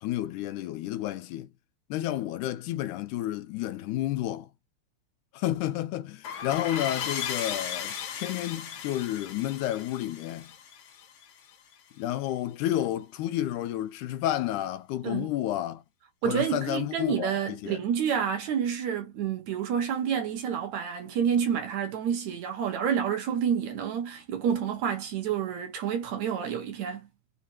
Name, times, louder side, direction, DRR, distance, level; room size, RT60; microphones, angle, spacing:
voice 1, 0.0-1.5 1.9-4.5 5.3-10.5 11.9-15.8 16.2-17.8, left 13 dB, 85° left, 2.2 m, -31 dB
sound 1, 6.2-11.5, left 8 dB, 70° left, 1.5 m, -36 dB
voice 2, 16.2-27.1, right 8 dB, 70° right, 2.4 m, -29 dB
5.7 x 2.9 x 2.4 m
omnidirectional pair, 3.5 m